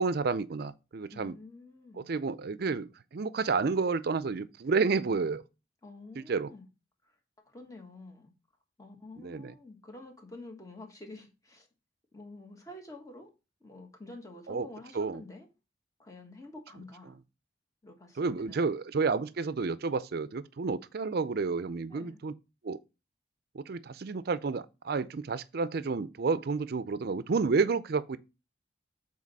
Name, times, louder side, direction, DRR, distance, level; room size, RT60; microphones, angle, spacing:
voice 1, 0.0-1.4 2.1-5.4 6.3-6.5 9.2-9.5 14.5-14.7 14.9-15.2 18.2-22.3 22.6-22.8 23.5-28.2, right 4 dB, 55° right, 0.5 m, -30 dB
voice 2, 1.1-2.1 5.8-6.7 7.0-7.1 7.4-8.3 8.8-11.7 12.1-13.3 13.6-15.5 16.0-17.2 17.8-18.6 21.9-22.2, left 2 dB, 20° left, 1.4 m, -48 dB
7.4 x 4.1 x 4.1 m
head